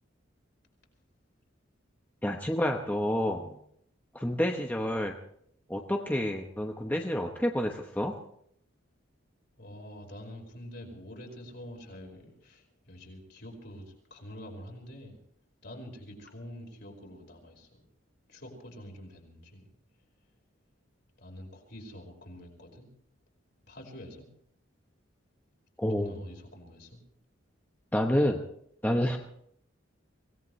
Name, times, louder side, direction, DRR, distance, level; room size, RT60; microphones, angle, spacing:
voice 1, 2.2-3.6 4.1-5.1 5.7-8.1 25.8-26.1 27.9-28.4 28.8-29.2, left 1 dB, 10° left, 2 dB, 1.0 m, -29 dB
voice 2, 9.6-15.2 15.6-17.8 18.3-19.7 21.2-22.9 23.7-24.3 25.9-27.0, equal, 55° left, 1 dB, 4.9 m, -46 dB
24.5 x 18.0 x 3.2 m, 0.68 s
head